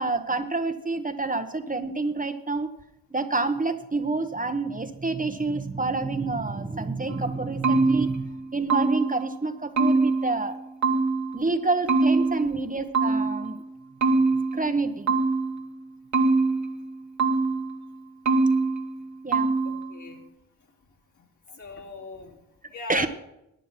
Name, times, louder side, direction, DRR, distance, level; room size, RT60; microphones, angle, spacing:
voice 1, 0.0-2.7 3.1-10.6 11.3-13.6 14.5-15.1 19.2-19.5 22.9-23.1, right 3 dB, 25° right, 7 dB, 1.1 m, -28 dB
sound 1, 7.1-9.3 9.8-11.4 11.9-13.6 14.0-15.7 16.1-17.8 18.3-19.1 19.3-19.9, right 3 dB, 50° right, 1.5 m, -24 dB
voice 2, 19.6-20.2 21.2-22.4 22.7-23.1, left 4 dB, 55° left, -2 dB, 3.1 m, -40 dB
11.5 x 9.1 x 5.7 m, 0.86 s
supercardioid pair, 50°, 36 cm